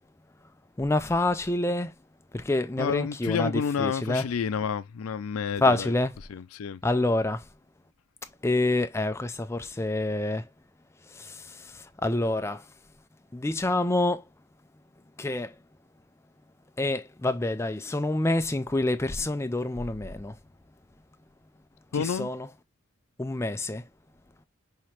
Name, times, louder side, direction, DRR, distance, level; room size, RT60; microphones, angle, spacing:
voice 1, 0.8-1.9 2.3-4.3 5.6-6.2 6.8-7.5 8.4-10.5 11.0-12.7 13.3-14.3 15.2-15.6 16.8-20.4 21.9-22.5 23.2-23.9, left 2 dB, 10° left, 0.3 m, -27 dB
voice 2, 2.8-5.9 6.3-6.8 21.9-22.3, left 6 dB, 80° left, 0.4 m, -29 dB
5.7 x 2.9 x 3.1 m
head